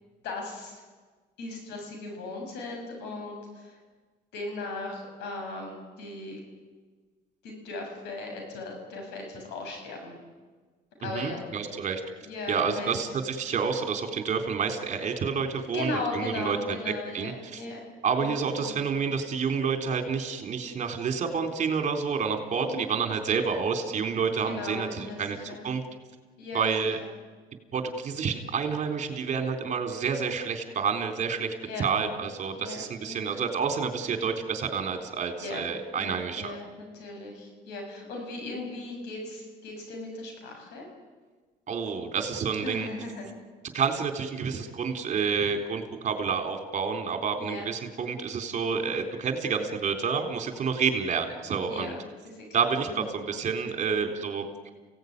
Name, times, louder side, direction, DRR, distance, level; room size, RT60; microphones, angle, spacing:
voice 1, 0.2-0.8 1.4-3.8 4.3-6.4 7.4-10.1 11.0-11.4 12.2-13.0 15.7-17.8 18.2-18.8 22.6-22.9 24.4-25.6 26.4-26.7 31.6-31.9 32.6-33.3 35.4-35.6 36.0-40.9 42.6-43.3 47.4-47.7 51.7-52.0 53.0-53.1, left 2 dB, 90° left, 3 dB, 7.2 m, -37 dB
voice 2, 11.0-12.0 12.5-17.6 18.0-25.4 25.6-25.8 26.5-27.0 27.7-36.6 41.7-42.9 43.7-52.0 52.5-54.7, right 6 dB, 45° right, 5 dB, 3.8 m, -29 dB
29.0 x 17.5 x 9.6 m, 1.4 s
cardioid pair, 110°, 17 cm